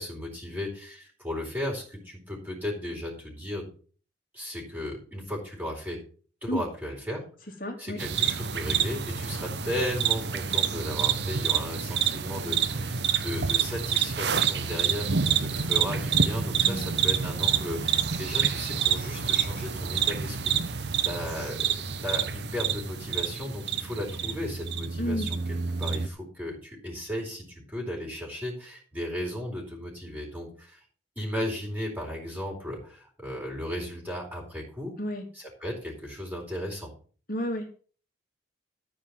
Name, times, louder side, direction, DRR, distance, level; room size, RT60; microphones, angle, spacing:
voice 1, 0.0-3.7 4.3-6.0 6.4-7.2 7.8-21.7 22.0-25.4 25.8-30.8 31.2-35.0 35.3-36.9, left 1 dB, 10° right, -1 dB, 4.2 m, -35 dB
voice 2, 7.6-8.0 16.6-17.0 25.0-25.3 35.0-35.2 37.3-37.7, equal, 50° left, 3 dB, 2.6 m, -31 dB
sound 1, 8.0-26.1, right 7 dB, 65° right, 0.9 m, -28 dB
13.5 x 5.3 x 7.4 m, 0.42 s
head